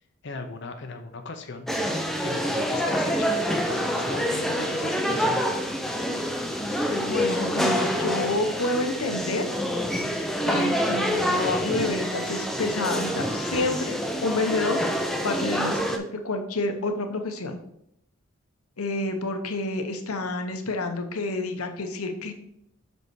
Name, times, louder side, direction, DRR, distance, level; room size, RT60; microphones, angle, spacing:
voice 1, 0.2-1.7 2.2-5.4, left 3 dB, 55° left, 6 dB, 0.6 m, -38 dB
sound 1, 1.7-16.0, equal, ahead, 0.5 m, -27 dB
voice 2, 6.9-9.4 10.4-14.8 15.2-17.6 18.8-22.3, left 2 dB, 85° left, 6 dB, 0.9 m, -29 dB
5.5 x 5.4 x 4.7 m, 0.77 s
head